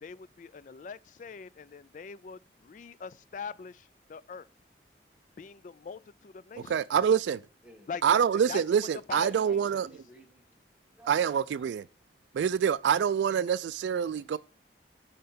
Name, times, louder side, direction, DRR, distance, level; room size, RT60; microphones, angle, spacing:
voice 1, 0.0-4.5 5.4-6.8 7.9-8.2 8.5-8.6 9.1-9.6, left 5 dB, 45° left, 0.3 m, -42 dB
voice 2, 6.7-7.4 8.0-9.9 11.1-11.8 12.3-14.4, right 8 dB, 80° right, 0.3 m, -26 dB
voice 3, 7.3-8.5 9.1-10.5 10.9-11.7 14.1-14.4, right 1 dB, 5° right, 1.5 m, -55 dB
6.4 x 5.6 x 5.8 m
head